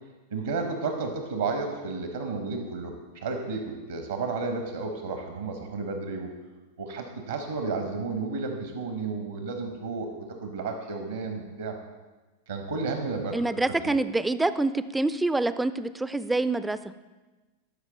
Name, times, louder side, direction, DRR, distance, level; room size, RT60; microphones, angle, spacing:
voice 1, 0.3-6.3 6.8-10.1 10.4-11.8 12.5-14.0, right 4 dB, 70° right, 4 dB, 0.9 m, -32 dB
voice 2, 13.3-16.8, right 2 dB, 5° right, 14 dB, 0.3 m, -26 dB
12.5 x 4.7 x 3.8 m, 1.2 s
figure-of-eight pair, 90°, 0 cm